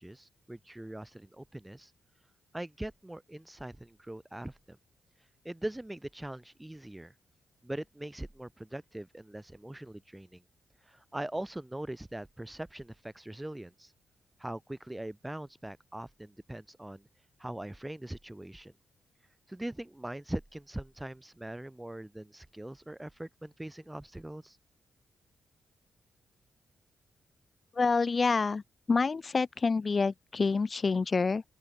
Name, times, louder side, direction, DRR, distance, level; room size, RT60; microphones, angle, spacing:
voice 1, 0.0-1.9 2.5-4.8 5.4-7.1 7.6-10.4 10.9-13.9 14.4-17.0 17.4-18.7 19.5-24.6, right 1 dB, 10° right, 5.2 m, -41 dB
voice 2, 27.7-28.6 28.9-31.4, left 4 dB, 40° left, 1.5 m, -27 dB
open air
cardioid pair, 75°, 0 cm